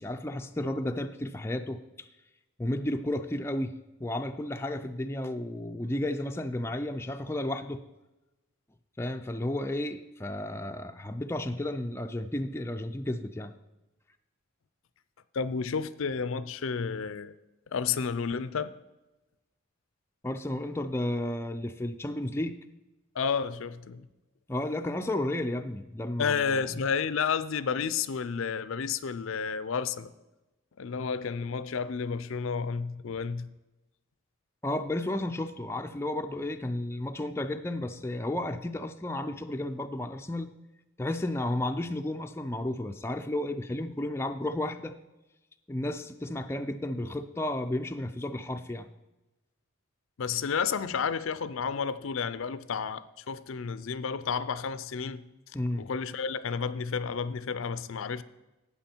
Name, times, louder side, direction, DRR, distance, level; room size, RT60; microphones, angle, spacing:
voice 1, 0.0-2.1 2.6-3.7 4.0-7.8 9.0-13.5 20.2-22.6 24.5-26.7 34.6-40.5 41.0-44.9 45.7-48.9 55.5-55.9, left 1 dB, 10° left, 0.4 m, -32 dB
voice 2, 15.3-17.3 17.7-18.7 23.1-24.1 26.2-30.1 30.8-33.5 50.2-55.3 55.8-58.2, left 6 dB, 70° left, 0.5 m, -31 dB
12.5 x 8.6 x 4.5 m
head